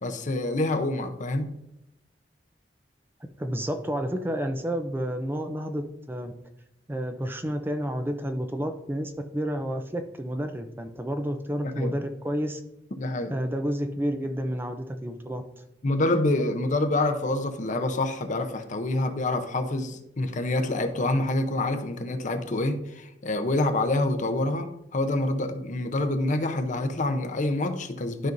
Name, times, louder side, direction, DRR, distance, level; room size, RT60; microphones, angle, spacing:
voice 1, 0.0-1.5 11.6-11.9 13.0-13.4 15.8-28.3, left 2 dB, 45° left, 0.7 m, -27 dB
voice 2, 3.4-6.3 6.9-12.6 13.3-15.4, equal, 10° right, 0.5 m, -30 dB
12.0 x 5.3 x 2.6 m
head